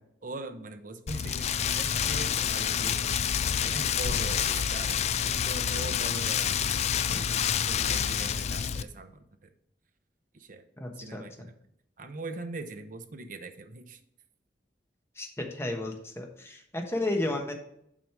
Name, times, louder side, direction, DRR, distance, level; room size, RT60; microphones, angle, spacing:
voice 1, 0.2-3.1 3.6-9.5 10.3-10.6 11.0-11.6 12.0-14.0, right 3 dB, 50° right, 8 dB, 0.7 m, -41 dB
Rain, 1.1-8.8, left 8 dB, 40° left, 0.3 m, -28 dB
voice 2, 10.8-11.2 15.2-17.5, left 2 dB, 15° left, 2 dB, 1.1 m, -32 dB
7.5 x 5.1 x 4.7 m, 0.74 s
head